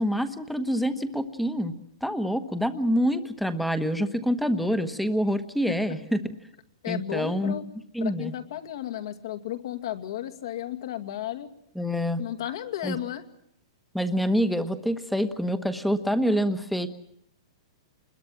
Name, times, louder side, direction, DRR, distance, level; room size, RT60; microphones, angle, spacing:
voice 1, 0.0-1.7 2.0-6.2 6.9-7.6 7.9-8.3 11.8-12.2 12.8-13.0 13.9-16.9, equal, ahead, 11 dB, 1.2 m, -26 dB
voice 2, 6.8-7.6 8.0-11.5 12.2-13.2, left 12 dB, 60° left, 9 dB, 2.3 m, -33 dB
27.5 x 21.5 x 7.4 m, 0.73 s
hypercardioid pair, 165°, 3 cm